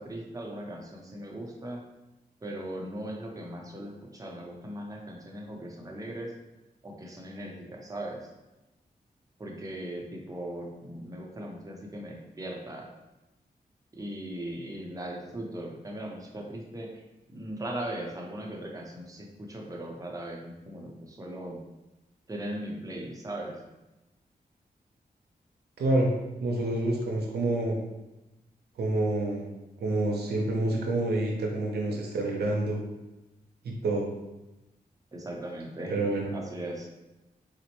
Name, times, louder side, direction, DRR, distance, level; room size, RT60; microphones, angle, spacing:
voice 1, 0.0-1.8 2.4-6.3 6.8-8.3 9.4-12.9 14.0-16.9 17.3-21.6 22.3-23.6 35.1-35.9 36.3-36.9, right 1 dB, 20° right, 0 dB, 0.7 m, -38 dB
voice 2, 25.8-26.1 26.4-27.8 28.8-29.5 29.8-32.8 33.6-34.1 35.9-36.3, right 2 dB, 85° right, -1 dB, 0.6 m, -28 dB
4.1 x 2.1 x 2.9 m, 1.0 s
cardioid pair, 60°, 16 cm